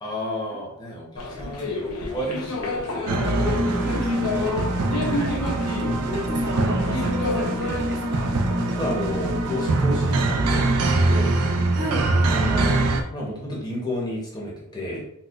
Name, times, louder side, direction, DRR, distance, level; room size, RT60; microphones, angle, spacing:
voice 1, 0.0-4.6 5.8-6.4 8.6-11.3 12.2-15.0, equal, 20° left, -3 dB, 0.8 m, -32 dB
sound 1, 1.2-7.8, left 3 dB, 90° left, 0.7 m, -30 dB
sound 2, 3.1-13.0, right 2 dB, 80° right, 0.4 m, -23 dB
voice 2, 3.8-4.2 4.9-5.4 5.8-8.3 11.8-12.1, equal, 55° right, -4 dB, 1.0 m, -34 dB
4.1 x 2.2 x 2.4 m, 0.75 s
head